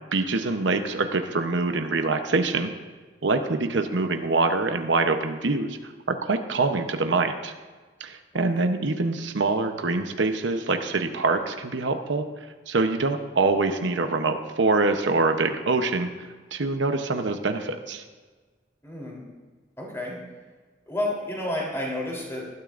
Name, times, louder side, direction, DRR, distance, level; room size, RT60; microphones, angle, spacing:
voice 1, 0.1-2.7 3.2-7.5 8.0-12.3 12.7-18.0, right 3 dB, 80° right, 6 dB, 0.8 m, -25 dB
voice 2, 8.3-8.6 18.8-19.3 19.8-20.2 20.8-22.5, left 1 dB, 15° left, -3 dB, 3.4 m, -31 dB
19.5 x 12.5 x 2.5 m, 1.4 s
head